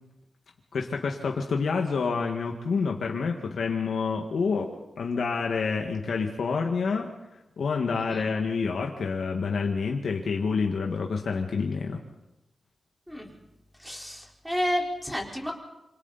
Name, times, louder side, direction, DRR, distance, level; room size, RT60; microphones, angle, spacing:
voice 1, 0.7-4.7 5.0-7.1 7.6-12.0, left 5 dB, 75° left, 1 dB, 1.9 m, -28 dB
voice 2, 7.9-8.3 13.1-13.3 13.8-15.5, equal, ahead, -1 dB, 4.6 m, -31 dB
26.5 x 25.5 x 4.3 m, 0.94 s
wide cardioid pair, 95°, 0 cm